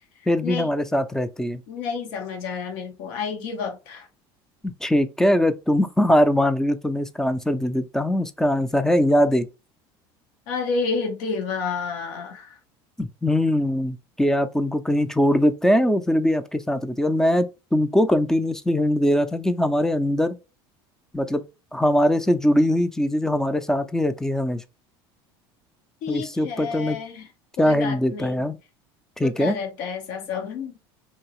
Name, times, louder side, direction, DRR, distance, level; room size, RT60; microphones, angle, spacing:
voice 1, 0.3-1.6 4.6-9.5 13.0-20.4 21.1-21.4 21.7-24.6 26.1-27.0 27.6-28.6 29.2-29.6, equal, 5° left, 0.4 m, -21 dB
voice 2, 1.7-4.1 10.5-12.6 26.0-27.3 27.6-28.4 29.2-30.7, left 5 dB, 75° left, 1.0 m, -30 dB
2.9 x 2.7 x 2.9 m
supercardioid pair, 95°, 13 cm